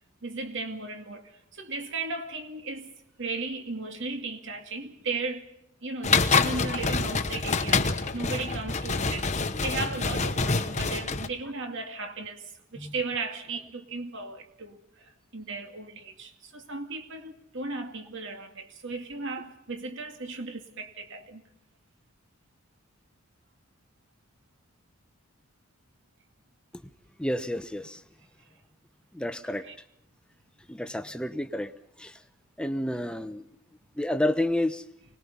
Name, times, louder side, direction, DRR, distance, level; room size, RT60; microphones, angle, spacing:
voice 1, 0.2-2.9 3.2-5.5 5.8-21.4 29.6-29.7, right 3 dB, 60° right, 2.4 m, -36 dB
sound 1, 6.0-11.3, left 4 dB, 35° left, 1.1 m, -26 dB
voice 2, 27.2-28.0 29.1-29.6 30.7-31.7 32.0-32.1 32.6-33.4 34.0-34.8, left 1 dB, 5° left, 0.9 m, -29 dB
25.0 x 20.0 x 5.5 m
head